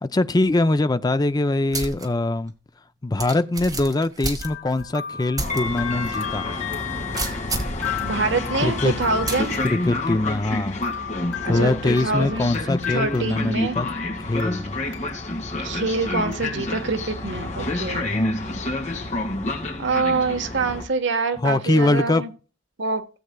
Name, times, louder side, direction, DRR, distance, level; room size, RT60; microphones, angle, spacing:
voice 1, 0.0-2.5 3.0-6.5 8.6-9.0 9.6-10.8 11.5-13.9 14.2-14.8 18.0-18.4 21.4-22.2, left 2 dB, 20° left, 0.5 m, -22 dB
sound 1, 1.7-2.1 2.5-2.6 3.2-4.9 5.4-5.6 6.0-6.1 7.1-7.8 9.3-9.6, right 3 dB, 20° right, 1.3 m, -29 dB
sound 2, 4.4-13.6 13.9-15.3 15.7-15.8 16.3-16.4, left 8 dB, 75° left, 2.5 m, -36 dB
Train, 5.4-20.8, left 2 dB, 35° left, 2.2 m, -29 dB
voice 2, 8.0-9.6 11.4-12.5 12.9-13.8 15.6-18.1 19.8-22.3 22.8-23.0, right 3 dB, 65° right, 1.3 m, -25 dB
17.0 x 7.8 x 2.3 m
head